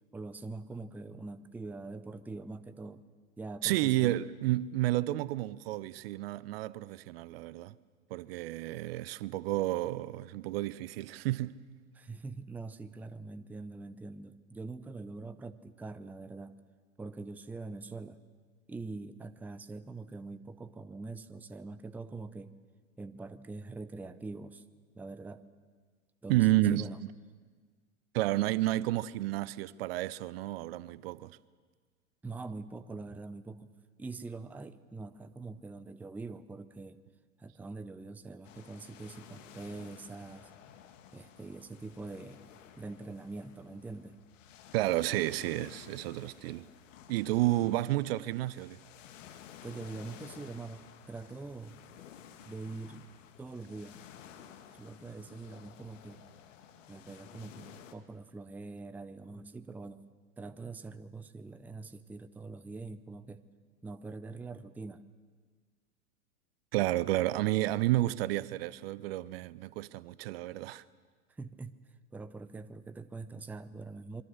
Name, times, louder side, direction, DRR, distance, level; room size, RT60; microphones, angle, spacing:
voice 1, 0.1-3.0 3.4-4.2 11.9-16.5 17.0-18.2 18.7-22.6 23.0-24.6 24.9-25.4 26.2-27.0 32.2-33.7 34.0-37.0 37.4-40.5 41.1-42.4 42.8-44.2 47.6-47.7 49.6-51.8 52.4-53.1 53.4-54.1 54.7-56.2 56.9-60.0 60.4-63.4 63.8-65.0 71.3-71.8 72.1-74.2, right 3 dB, 5° right, 0.6 m, -44 dB
voice 2, 3.6-7.7 8.1-11.6 26.3-26.9 28.1-31.4 44.7-46.7 47.1-48.8 66.7-70.8, right 16 dB, 45° right, 0.6 m, -31 dB
sound 1, 38.4-57.9, left 9 dB, 60° left, 2.2 m, -54 dB
25.5 x 23.0 x 6.6 m
figure-of-eight pair, 95°, 43 cm